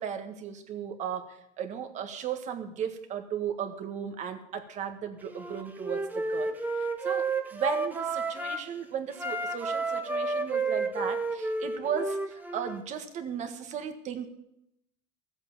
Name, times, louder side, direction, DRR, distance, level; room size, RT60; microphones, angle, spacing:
voice 1, 0.0-14.3, right 7 dB, 45° right, 6 dB, 1.6 m, -36 dB
Wind instrument woodwind instrument, 5.3-8.7 9.1-12.8, right 3 dB, 10° right, 1.1 m, -31 dB
14.0 x 8.0 x 7.2 m, 0.83 s
supercardioid pair, 125°, 17 cm